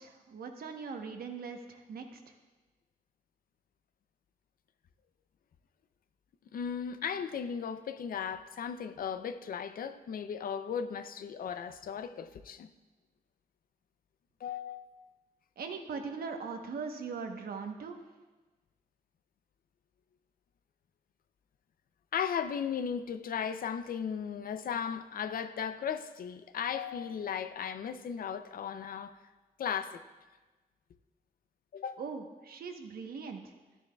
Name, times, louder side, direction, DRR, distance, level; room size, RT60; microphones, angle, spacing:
voice 1, 0.0-2.2 15.6-18.0 32.0-33.4, right 5 dB, 80° right, 4 dB, 1.0 m, -40 dB
voice 2, 6.5-12.7 14.4-15.1 22.1-29.1 29.6-30.0 31.7-32.0, left 7 dB, 70° left, 11 dB, 0.5 m, -36 dB
14.0 x 10.0 x 2.3 m, 1.2 s
wide cardioid pair, 170°, 15 cm